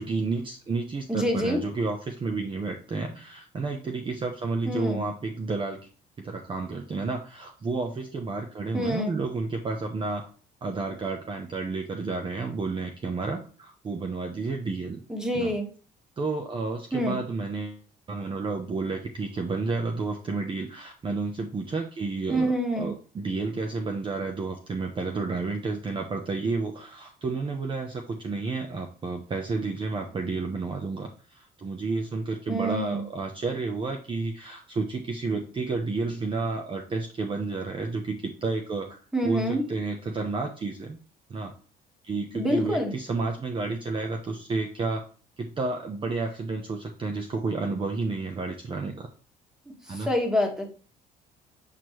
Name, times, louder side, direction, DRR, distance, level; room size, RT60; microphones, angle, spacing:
voice 1, 0.0-5.8 6.2-10.3 10.6-15.0 15.3-15.5 16.2-17.8 18.1-39.0 39.2-41.0 41.3-41.5 42.0-45.1 45.4-49.1 49.9-50.1, right 3 dB, 30° right, 3 dB, 0.8 m, -31 dB
voice 2, 1.1-1.6 4.7-5.0 8.7-9.2 15.1-15.7 16.9-17.2 22.3-22.9 32.5-33.0 39.1-39.6 42.3-43.0 49.9-50.6, equal, 5° right, 2 dB, 1.7 m, -26 dB
7.4 x 4.4 x 3.1 m, 0.39 s
cardioid pair, 110°, 17 cm